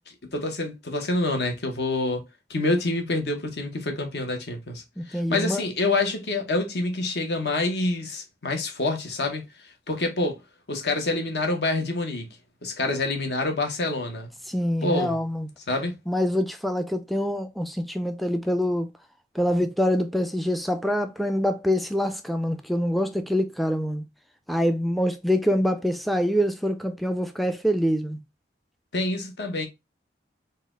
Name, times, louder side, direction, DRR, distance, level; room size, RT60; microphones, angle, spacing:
voice 1, 0.3-9.4 9.9-10.4 10.7-12.4 12.6-14.3 14.8-15.2 15.7-16.0 28.9-29.7, left 2 dB, 70° left, 1.0 m, -27 dB
voice 2, 5.0-5.6 14.5-15.5 16.1-18.9 19.3-24.0 24.5-28.2, equal, ahead, 0.3 m, -25 dB
4.1 x 2.3 x 3.7 m
head